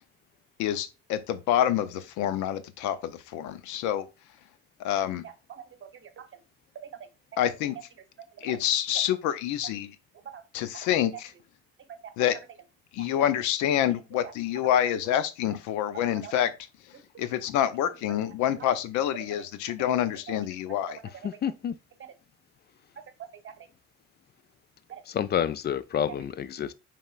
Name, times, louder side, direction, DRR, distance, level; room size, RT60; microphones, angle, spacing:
voice 1, 0.6-4.1 4.8-5.2 7.4-7.8 8.4-9.9 10.5-11.3 12.2-12.4 12.9-16.5 17.2-21.0, left 11 dB, 75° left, 0.7 m, -27 dB
voice 2, 5.2-6.4 6.7-7.1 8.3-8.6 10.2-10.4 10.9-11.0 11.9-12.1 13.0-13.3 14.1-14.3 15.9-16.3 17.1-17.3 19.8-19.9 23.0-23.7 24.9-25.0, right 8 dB, 40° right, 1.0 m, -44 dB
voice 3, 21.2-21.8 25.1-26.7, left 9 dB, 35° left, 0.4 m, -29 dB
5.4 x 3.5 x 2.5 m
supercardioid pair, 85°, 30 cm